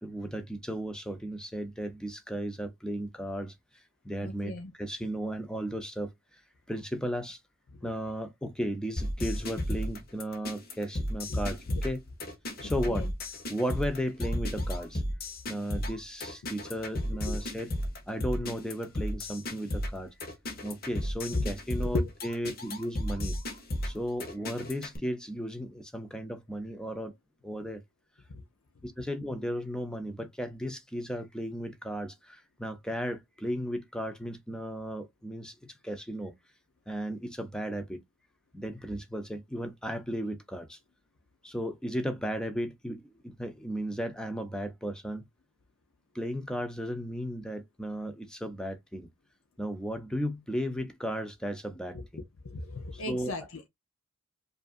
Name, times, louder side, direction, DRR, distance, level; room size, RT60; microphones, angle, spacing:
voice 1, 0.0-6.4 6.7-7.4 7.8-12.0 12.6-13.1 13.5-15.0 15.5-17.7 18.1-20.1 20.6-23.4 23.8-27.1 27.4-27.8 28.8-36.3 36.9-38.0 38.5-40.8 41.4-45.2 46.1-49.1 49.6-52.0 52.9-53.3, equal, 5° left, 0.6 m, -35 dB
voice 2, 4.2-4.7 7.8-7.9 11.3-11.4 11.7-11.8 12.6-13.1 17.3-17.4 21.3-21.5 21.8-22.1 28.3-28.4 51.9-52.0 52.4-53.7, left 2 dB, 75° left, 0.7 m, -35 dB
sound 1, 9.0-25.0, equal, 45° left, 1.1 m, -33 dB
5.0 x 2.6 x 2.5 m
head